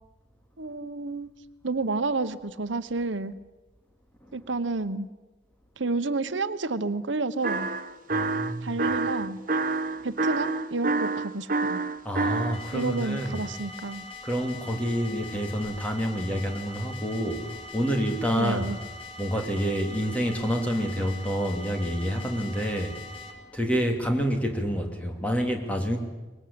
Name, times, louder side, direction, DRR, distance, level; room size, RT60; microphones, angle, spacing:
voice 1, 0.6-1.3 1.6-3.3 4.3-5.1 5.8-7.7 8.6-9.4 10.0-11.8 12.7-14.0 18.3-18.8, right 3 dB, 85° right, 12 dB, 1.0 m, -30 dB
sound 1, 7.4-12.6, right 3 dB, 45° right, 0.9 m, -27 dB
voice 2, 8.1-8.8 12.0-13.4 14.2-18.7 19.2-22.9 23.5-26.0, equal, 5° left, 2 dB, 2.8 m, -28 dB
sound 2, 12.5-23.3, left 3 dB, 30° left, 2.8 m, -42 dB
24.5 x 21.0 x 8.7 m, 1.2 s
head